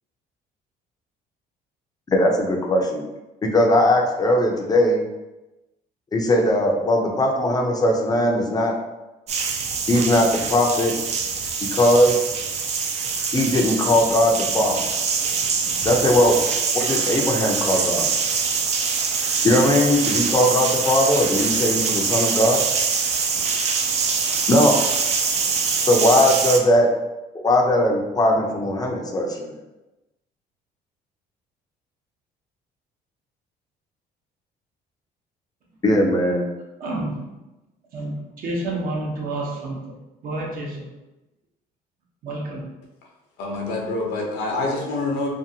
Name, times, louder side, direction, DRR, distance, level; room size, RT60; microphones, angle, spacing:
voice 1, 2.1-3.0 3.4-5.0 6.1-8.7 9.9-10.9 11.7-12.3 13.3-14.8 15.8-16.4 16.7-18.1 19.4-22.6 24.5-24.8 25.9-26.9 27.3-29.5 35.8-36.4, left 1 dB, 25° left, 2 dB, 0.4 m, -19 dB
sound 1, 9.3-26.6, right 5 dB, 40° right, 0.4 m, -24 dB
voice 2, 36.8-37.2 37.9-39.8 40.2-40.8 42.2-42.6, right 2 dB, 55° right, -2 dB, 0.8 m, -29 dB
voice 3, 43.4-45.3, left 2 dB, 80° left, 0 dB, 0.7 m, -26 dB
2.6 x 2.4 x 2.7 m, 1.0 s
cardioid pair, 110°, 17 cm